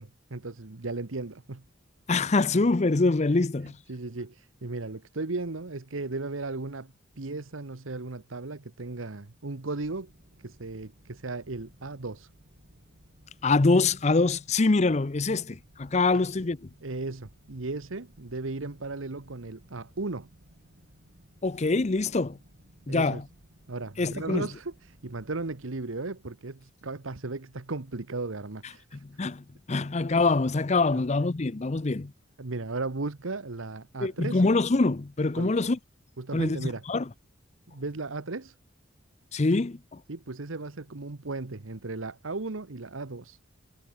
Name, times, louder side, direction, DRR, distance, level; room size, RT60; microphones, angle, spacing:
voice 1, 0.0-1.6 3.9-10.1 10.4-12.3 16.8-20.3 22.9-23.2 23.7-29.0 30.9-31.1 32.4-34.4 35.4-35.6 36.2-36.8 37.7-38.5 40.1-43.4, right 3 dB, 85° right, 1.2 m, -36 dB
voice 2, 2.1-3.8 13.4-16.6 21.4-22.4 22.9-23.2 24.0-24.5 29.0-29.4 29.7-32.1 34.0-35.8 36.3-36.6 36.9-37.0 39.3-40.0, left 3 dB, 35° left, 0.6 m, -24 dB
sound 1, 9.7-25.7, right 1 dB, 50° right, 3.1 m, -58 dB
head